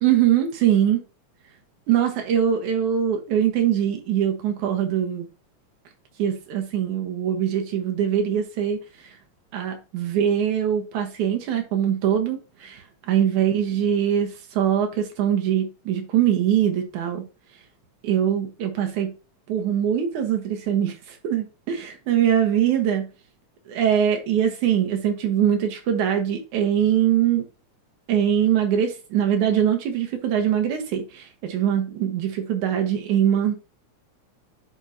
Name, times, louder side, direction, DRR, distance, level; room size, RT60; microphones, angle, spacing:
voice 1, 0.0-1.0 1.9-5.3 6.2-8.8 9.5-12.8 13.1-17.2 18.0-19.1 19.5-23.1 23.7-27.5 28.1-33.6, right 9 dB, 85° right, 2.8 m, -22 dB
9.9 x 5.6 x 2.7 m
omnidirectional pair, 3.4 m